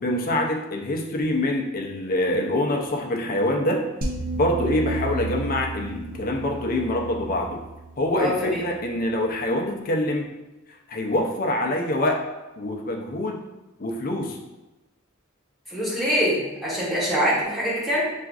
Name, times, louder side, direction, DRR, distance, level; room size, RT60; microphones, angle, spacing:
voice 1, 0.0-3.8 4.3-7.6 8.0-10.3 10.9-12.2 12.6-13.4 13.8-14.4, left 1 dB, 45° left, 1 dB, 0.5 m, -25 dB
sound 1, 4.0-9.2, right 2 dB, 45° right, 0.5 m, -33 dB
voice 2, 8.2-8.6 15.7-18.0, equal, ahead, -9 dB, 1.3 m, -24 dB
5.7 x 2.5 x 2.4 m, 1.0 s
head